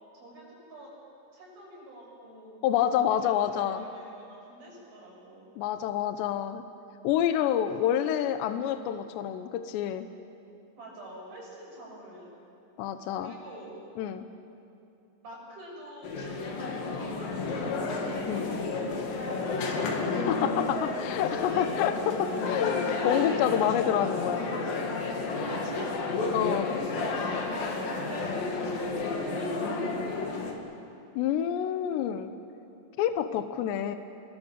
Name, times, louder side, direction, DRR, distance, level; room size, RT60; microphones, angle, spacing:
voice 1, 0.1-0.9 1.3-2.6 2.9-5.5 10.8-12.4 13.2-13.7 15.2-20.5 25.4-25.9 26.8-30.7, right 1 dB, 50° right, -2 dB, 8.1 m, -46 dB
voice 2, 2.6-3.9 5.6-6.6 7.0-10.1 12.8-13.3 14.0-14.3 18.3-18.5 20.1-24.5 26.3-26.7 31.2-32.3 33.0-34.0, left 10 dB, 75° left, 9 dB, 2.9 m, -28 dB
sound 1, 16.0-30.5, left 3 dB, 55° left, 3.6 m, -31 dB
29.0 x 22.5 x 7.4 m, 2.7 s
omnidirectional pair, 5.4 m